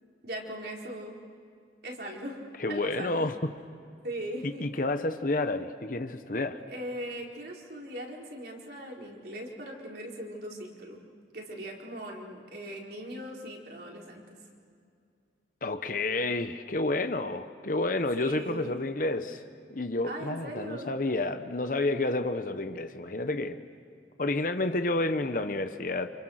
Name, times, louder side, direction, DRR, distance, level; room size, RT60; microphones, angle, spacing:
voice 1, 0.2-1.2 1.8-2.4 2.7-3.3 4.0-4.7 6.7-11.0 11.3-14.4 18.2-18.8 20.0-20.9, right 1 dB, 60° right, -1 dB, 4.4 m, -39 dB
voice 2, 2.6-3.5 4.6-6.6 15.6-19.4 19.7-23.6 24.2-26.1, left 2 dB, 50° left, 9 dB, 1.0 m, -30 dB
29.5 x 28.0 x 6.5 m, 2.3 s
head